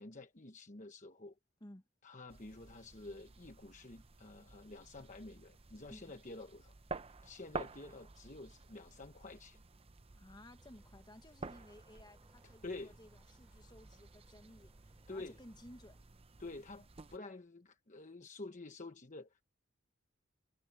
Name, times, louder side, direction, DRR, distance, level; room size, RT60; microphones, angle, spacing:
voice 1, 0.0-1.4 2.0-6.7 7.2-9.6 12.6-13.0 15.1-15.4 16.4-19.4, left 2 dB, 35° left, 1.1 m, -49 dB
sound 1, 2.3-17.2, right 3 dB, 30° right, 0.7 m, -51 dB
voice 2, 10.1-16.0, left 1 dB, 20° left, 1.5 m, -57 dB
sound 2, 10.6-16.0, equal, 5° right, 7.3 m, -71 dB
head